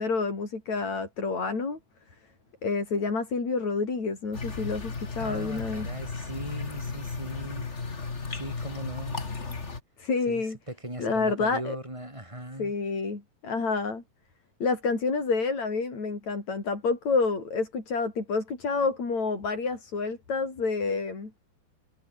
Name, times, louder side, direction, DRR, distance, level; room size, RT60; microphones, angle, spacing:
voice 1, 0.0-1.8 2.6-5.9 10.0-10.6 11.0-11.8 12.6-14.0 14.6-21.3, left 4 dB, 60° left, 7.0 m, -28 dB
sound 1, 4.3-9.8, left 4 dB, 25° left, 2.1 m, -35 dB
voice 2, 5.2-7.7 8.3-9.2 10.3-12.7, right 1 dB, 10° right, 7.5 m, -39 dB
omnidirectional pair, 3.6 m